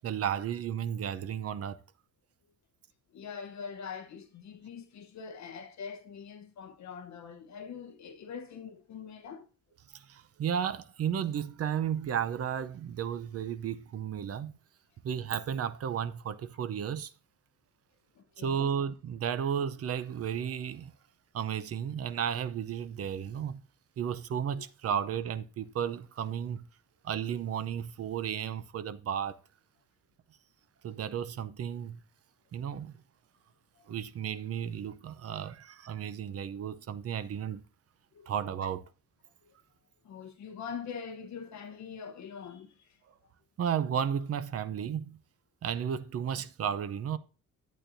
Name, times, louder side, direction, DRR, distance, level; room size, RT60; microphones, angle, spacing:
voice 1, 0.0-1.8 9.9-14.5 15.0-17.1 18.4-20.9 21.3-23.6 24.0-26.7 27.0-29.4 30.8-32.0 32.5-33.0 33.9-37.6 38.3-38.8 43.6-45.2 45.6-47.2, right 8 dB, 45° right, 0.6 m, -33 dB
voice 2, 3.1-9.4 18.4-18.7 38.1-38.3 40.0-42.7, left 6 dB, 55° left, 0.9 m, -43 dB
11.5 x 8.6 x 2.6 m
cardioid pair, 180°, 33 cm